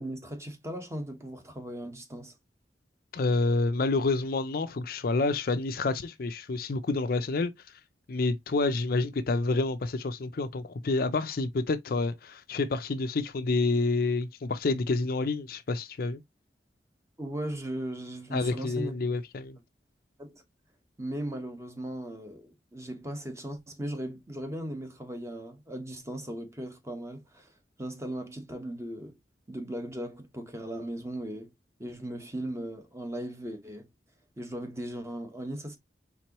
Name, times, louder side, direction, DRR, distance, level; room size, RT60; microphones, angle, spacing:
voice 1, 0.0-2.3 17.2-18.9 20.2-20.4 21.0-27.5 27.8-29.2 29.5-31.5 31.8-33.9 34.4-35.8, right 1 dB, 15° right, 1.1 m, -37 dB
voice 2, 3.1-7.5 8.1-16.2 18.3-19.6, left 3 dB, 55° left, 0.5 m, -28 dB
4.5 x 3.8 x 2.9 m
head